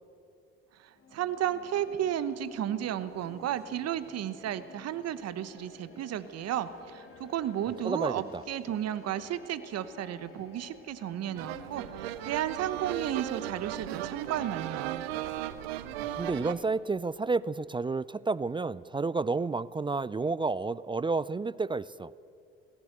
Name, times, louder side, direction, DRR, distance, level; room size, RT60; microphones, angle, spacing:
voice 1, 0.8-15.0, right 11 dB, 55° right, 14 dB, 1.1 m, -33 dB
sound 1, 0.9-19.2, left 4 dB, 45° left, 3.4 m, -53 dB
voice 2, 7.8-8.4 16.2-22.1, right 3 dB, 15° right, 20 dB, 0.4 m, -30 dB
sound 2, 11.4-16.5, right 12 dB, 85° right, 0.8 m, -36 dB
21.0 x 16.0 x 8.0 m, 2.5 s
hypercardioid pair, 55°, 30 cm